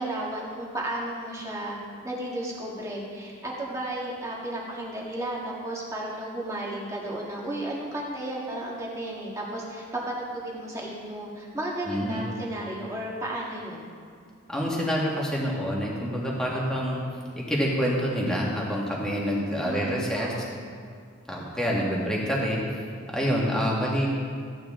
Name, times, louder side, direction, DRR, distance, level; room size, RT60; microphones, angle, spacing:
voice 1, 0.0-1.8 2.0-13.8 19.6-20.4, right 1 dB, 15° right, -4 dB, 1.7 m, -33 dB
voice 2, 11.9-12.3 14.5-17.0 17.3-20.3 21.3-22.8 23.1-24.1, equal, 5° left, -4 dB, 1.7 m, -27 dB
14.0 x 9.0 x 3.7 m, 2.2 s
head